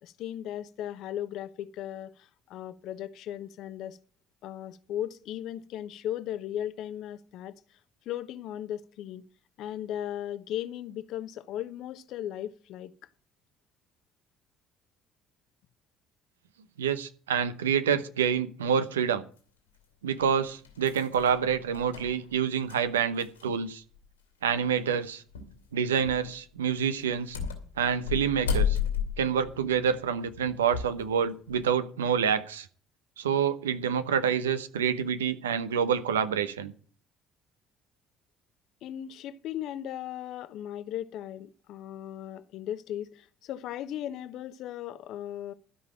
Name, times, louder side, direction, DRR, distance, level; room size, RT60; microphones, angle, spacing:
voice 1, 0.0-4.0 4.4-7.5 8.1-9.2 9.6-12.9 38.8-45.5, left 11 dB, 60° left, 0.9 m, -37 dB
voice 2, 16.8-19.2 20.0-23.8 24.4-25.2 25.7-27.4 27.8-28.8 29.2-32.7 33.2-36.7, right 7 dB, 85° right, 0.9 m, -27 dB
sound 1, 19.4-19.5 20.2-23.7 24.0-24.1 25.3-25.6 26.0-26.3 27.0-31.0 31.5-31.7, left 7 dB, 85° left, 2.6 m, -33 dB
13.0 x 5.6 x 8.8 m
hypercardioid pair, 55°, 0 cm